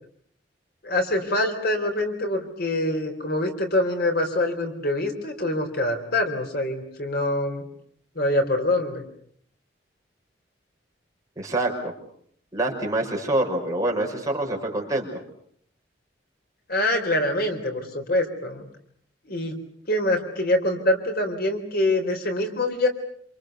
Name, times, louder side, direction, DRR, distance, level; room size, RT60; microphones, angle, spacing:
voice 1, 0.8-7.6 8.2-9.0 16.7-18.7 19.3-19.5 19.9-22.9, left 1 dB, 60° left, 5 dB, 4.0 m, -25 dB
voice 2, 11.4-11.9 12.5-15.2, right 1 dB, 20° right, 0 dB, 5.8 m, -26 dB
27.5 x 27.5 x 6.8 m, 0.65 s
head